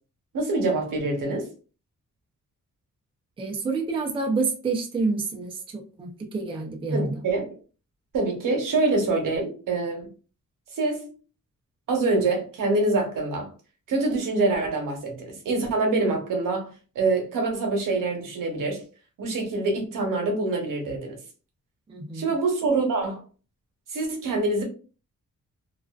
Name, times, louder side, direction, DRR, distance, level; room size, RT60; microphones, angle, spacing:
voice 1, 0.3-1.5 6.9-7.5 8.1-10.1 10.7-11.1 11.9-13.5 13.9-18.8 19.2-21.2 22.1-23.2 23.9-24.6, right 3 dB, 85° right, 0.9 m, -25 dB
voice 2, 3.4-7.2 21.9-22.3, right 3 dB, 15° right, 0.4 m, -28 dB
2.4 x 2.3 x 2.3 m
wide cardioid pair, 160°, 32 cm